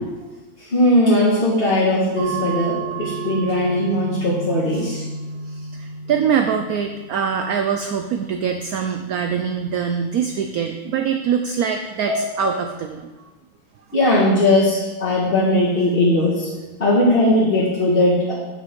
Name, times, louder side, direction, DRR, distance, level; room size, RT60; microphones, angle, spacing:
voice 1, 0.7-5.0 12.0-12.1 13.9-14.7 15.0-16.3 16.8-18.3, left 1 dB, 30° left, -9 dB, 1.7 m, -18 dB
sound 1, 2.2-7.3, right 4 dB, 50° left, 1.9 m, -31 dB
voice 2, 4.7-5.0 5.5-13.1, right 7 dB, 85° right, 5 dB, 0.8 m, -23 dB
8.5 x 6.0 x 3.7 m, 1.2 s
omnidirectional pair, 2.1 m